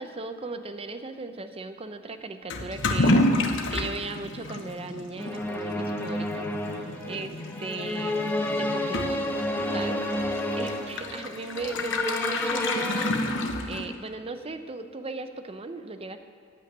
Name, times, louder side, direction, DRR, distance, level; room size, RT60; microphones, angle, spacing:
voice 1, 0.0-3.2 3.7-6.5 6.8-9.4 9.7-10.0 10.5-13.2 13.7-16.2, right 3 dB, 30° right, 9 dB, 0.6 m, -37 dB
Toilet flush / Liquid, 2.5-14.1, left 2 dB, 60° left, 1.0 m, -30 dB
sound 1, 5.2-13.1, left 1 dB, 10° left, 0.9 m, -30 dB
15.0 x 5.7 x 8.8 m, 2.3 s
head